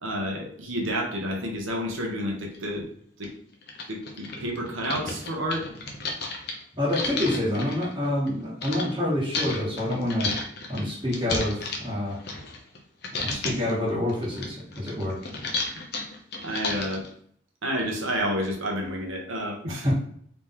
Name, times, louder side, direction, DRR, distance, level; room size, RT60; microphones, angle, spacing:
voice 1, 0.0-2.9 3.2-3.3 3.9-5.7 10.8-10.9 16.4-17.0 17.6-19.9, equal, 80° right, 1 dB, 1.2 m, -30 dB
sound 1, 2.5-2.6 3.2-3.3 3.6-8.8 9.3-12.8 13.0-13.7 14.1-17.1, left 3 dB, 55° left, 0.8 m, -32 dB
voice 2, 6.8-10.3 10.7-12.2 13.2-15.2 19.6-19.9, left 1 dB, 20° right, -10 dB, 1.2 m, -27 dB
4.0 x 3.0 x 3.6 m, 0.63 s
head